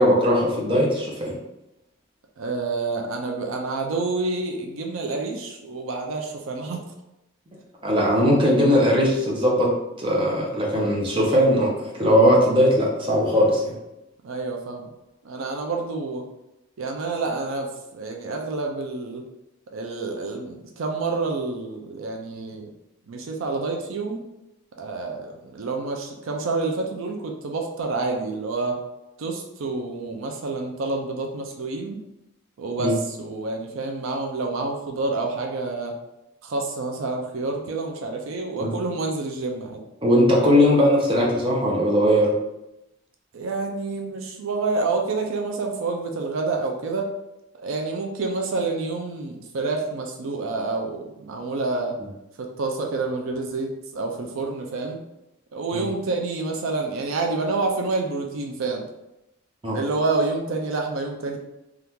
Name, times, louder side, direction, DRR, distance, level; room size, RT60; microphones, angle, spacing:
voice 1, 0.0-1.4 7.8-9.7 10.0-13.8 32.8-32.9 38.6-38.7 40.0-42.3 55.7-55.8 59.6-59.8, equal, 25° right, -3 dB, 0.7 m, -19 dB
voice 2, 2.4-6.8 14.2-14.9 15.2-16.2 16.8-19.2 19.7-22.7 23.1-24.2 24.8-28.8 29.2-32.0 32.6-36.0 36.4-39.8 43.3-47.1 47.5-52.0 52.4-55.0 55.5-58.8 59.7-61.4, right 3 dB, 85° right, 2 dB, 0.5 m, -28 dB
2.8 x 2.4 x 3.5 m, 0.91 s
head